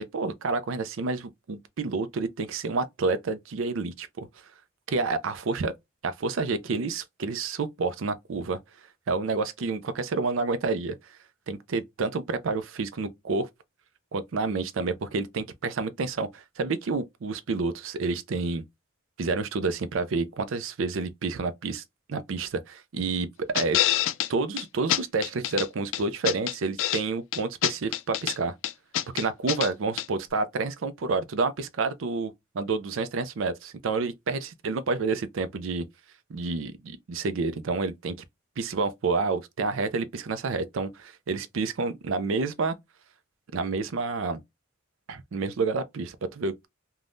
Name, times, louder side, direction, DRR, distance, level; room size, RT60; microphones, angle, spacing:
voice 1, 0.0-4.3 4.9-5.7 6.0-8.6 9.1-11.0 11.5-13.5 14.1-18.6 19.2-21.8 22.1-23.3 23.5-23.8 24.3-28.5 29.1-35.9 36.3-38.2 38.6-42.8 43.5-44.4 45.1-46.7, right 4 dB, 70° right, 0.5 m, -29 dB
sound 1, 23.5-24.3 24.6-24.7 24.9-25.7 25.9-27.0 27.3-28.4 28.6-29.7 30.0-30.1, left 13 dB, 70° left, 0.3 m, -26 dB
2.6 x 2.2 x 3.3 m
head